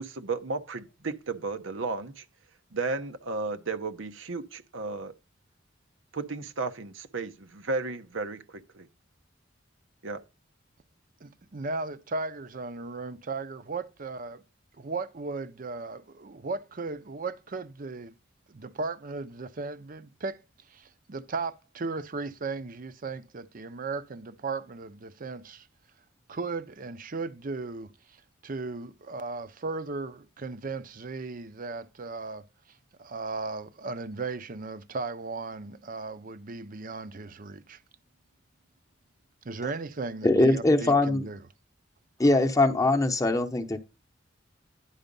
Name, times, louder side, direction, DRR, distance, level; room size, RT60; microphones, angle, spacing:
voice 1, 0.0-2.2 2.7-5.1 6.1-8.9 10.0-10.2, right 3 dB, 90° right, 0.9 m, -34 dB
voice 2, 11.2-14.4 14.7-18.1 18.5-20.4 20.7-25.7 26.3-37.8 39.4-41.4, right 3 dB, 45° right, 0.6 m, -36 dB
voice 3, 40.2-41.3 42.2-43.8, left 2 dB, 15° left, 0.8 m, -22 dB
10.0 x 4.9 x 5.3 m
head